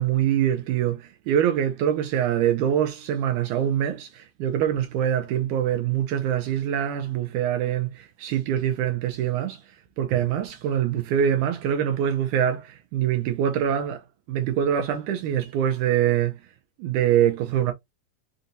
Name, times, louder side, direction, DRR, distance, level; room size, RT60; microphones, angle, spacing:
voice 1, 0.0-9.6 10.0-14.0 14.3-16.4 16.8-17.7, right 10 dB, 80° right, 1.8 m, -24 dB
5.5 x 2.6 x 2.6 m
omnidirectional pair, 4.1 m